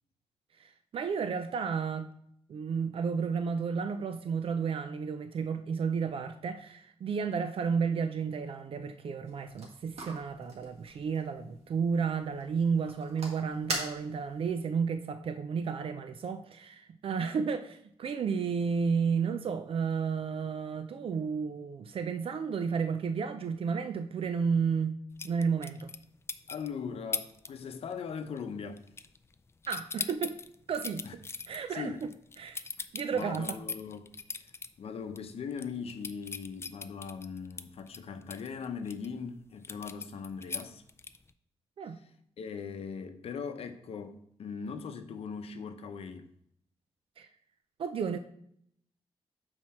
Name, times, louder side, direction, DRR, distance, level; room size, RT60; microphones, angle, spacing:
voice 1, 0.6-2.1 2.5-25.0 25.2-25.9 29.7-30.4 30.7-32.0 32.4-32.6 32.9-33.5 41.8-42.0 47.2-47.3 47.8-48.2, right 6 dB, 60° right, 0.4 m, -32 dB
sound 1, 9.2-14.4, right 2 dB, 85° right, 1.8 m, -42 dB
sound 2, 25.2-26.0 26.3-26.7 27.1-27.5 27.8-28.1 28.4-29.4 29.6-34.7 35.1-35.2 35.5-39.1 39.6-41.3, left 4 dB, 25° left, 0.3 m, -39 dB
voice 2, 26.5-28.8 31.0-31.2 31.7-32.1 33.1-34.5 34.8-40.8 42.4-46.3, left 6 dB, 70° left, 0.7 m, -40 dB
7.6 x 4.5 x 4.2 m
wide cardioid pair, 145°, 10 cm